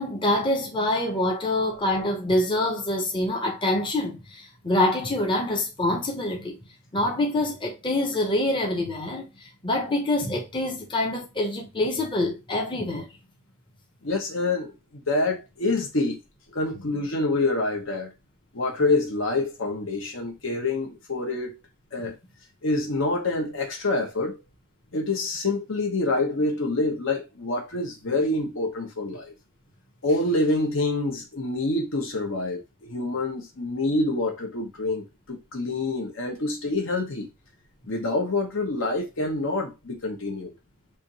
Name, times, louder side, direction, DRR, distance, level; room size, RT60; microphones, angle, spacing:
voice 1, 0.0-6.6 6.9-13.1, left 1 dB, 25° left, 0.9 m, -26 dB
voice 2, 14.0-16.2 16.5-18.1 18.5-21.5 21.9-22.2 22.6-24.4 24.9-29.3 30.0-37.3 37.9-40.5, left 2 dB, 65° left, 1.1 m, -26 dB
3.5 x 2.7 x 4.0 m
head